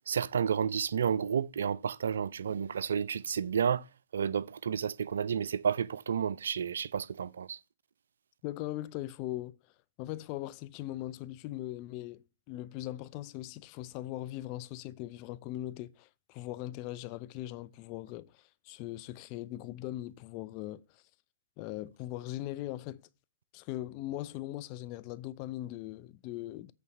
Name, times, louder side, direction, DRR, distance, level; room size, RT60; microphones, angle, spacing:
voice 1, 0.1-3.8 4.1-7.6, right 7 dB, 70° right, 0.4 m, -31 dB
voice 2, 8.4-9.6 10.0-21.0 21.6-23.0 23.5-26.7, left 15 dB, 40° left, 0.5 m, -40 dB
8.2 x 3.9 x 6.3 m
figure-of-eight pair, 115°, 0 cm